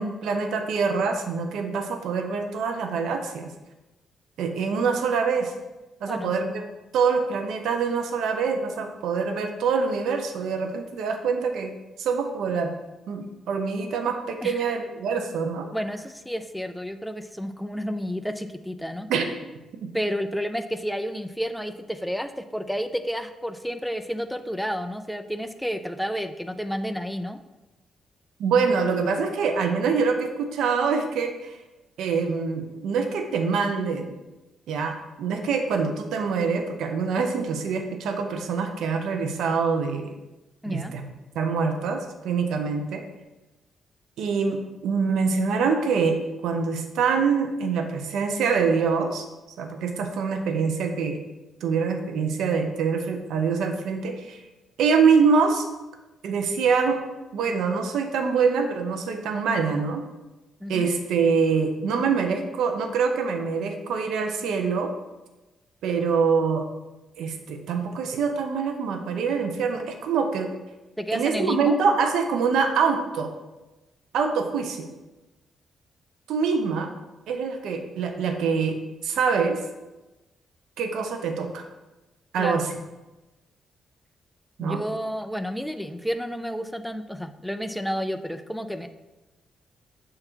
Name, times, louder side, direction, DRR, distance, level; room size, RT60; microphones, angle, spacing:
voice 1, 0.0-3.5 4.4-5.5 6.0-6.6 6.9-11.7 12.0-12.7 13.1-15.7 19.1-19.5 28.4-31.6 32.0-34.2 34.7-40.1 40.7-41.1 41.3-43.0 44.2-49.3 49.6-51.2 51.6-54.4 54.8-55.7 56.2-57.0 57.3-60.0 60.7-64.9 65.8-66.7 67.2-70.5 71.1-73.3 74.1-74.9 76.3-76.9 77.3-79.6 80.8-81.7 82.3-82.7 84.6-84.8, right 5 dB, 85° right, 6 dB, 0.7 m, -25 dB
voice 2, 15.7-19.1 19.9-27.4 40.6-40.9 60.6-60.9 71.0-71.8 82.4-82.7 84.6-88.9, equal, ahead, 8 dB, 0.3 m, -31 dB
6.4 x 3.8 x 4.5 m, 1.1 s
cardioid pair, 110°, 0 cm